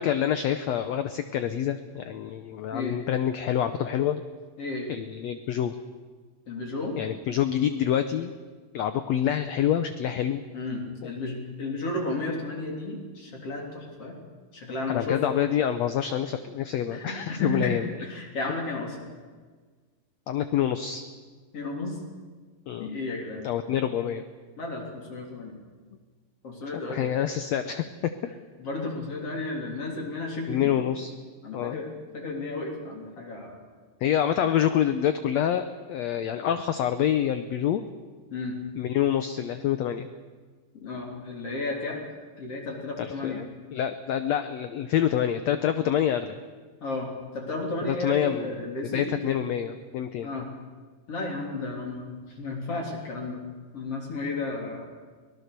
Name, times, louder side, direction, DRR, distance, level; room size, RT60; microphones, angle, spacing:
voice 1, 0.0-4.2 4.9-5.7 7.0-8.3 8.7-10.4 14.9-17.9 20.3-21.0 22.7-22.9 23.4-24.2 26.7-27.8 30.5-31.1 31.5-31.7 34.0-37.8 38.8-40.1 43.0-43.4 43.7-46.4 47.9-48.5 48.9-50.4, left 10 dB, 75° left, 10 dB, 1.6 m, -27 dB
voice 2, 4.6-4.9 6.5-7.0 10.5-14.2 14.5-15.2 16.9-19.0 21.5-22.0 22.8-23.5 24.6-25.6 26.4-27.2 28.6-30.7 31.4-31.9 32.1-33.6 38.3-38.6 40.8-42.0 42.4-43.4 46.8-49.4 50.2-50.5 51.1-53.4 53.7-54.9, left 2 dB, 45° left, 0 dB, 4.2 m, -33 dB
24.5 x 18.5 x 6.8 m, 1.5 s
omnidirectional pair, 4.0 m